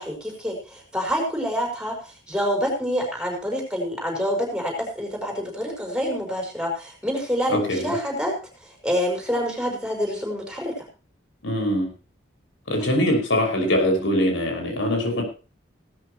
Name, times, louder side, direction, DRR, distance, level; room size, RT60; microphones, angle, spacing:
voice 1, 0.0-8.3 8.8-10.7, equal, 5° right, 0 dB, 5.3 m, -27 dB
voice 2, 7.5-7.9 11.4-11.9 12.7-15.2, left 1 dB, 90° left, 2 dB, 5.8 m, -22 dB
17.0 x 13.5 x 3.1 m, 0.35 s
head